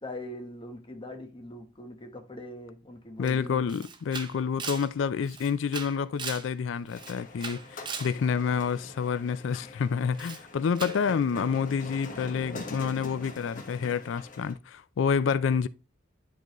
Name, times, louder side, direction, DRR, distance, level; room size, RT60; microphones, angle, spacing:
voice 1, 0.0-3.7, left 1 dB, 25° left, 1.1 m, -42 dB
voice 2, 3.2-15.7, left 6 dB, 70° left, 0.4 m, -28 dB
Camera, 3.3-3.4 3.7-6.5 6.9-8.2 10.1-10.4 10.8-11.0, right 5 dB, 25° right, 0.6 m, -39 dB
sound 1, 6.9-14.5, left 2 dB, 45° left, 1.3 m, -44 dB
10.5 x 3.8 x 3.0 m
head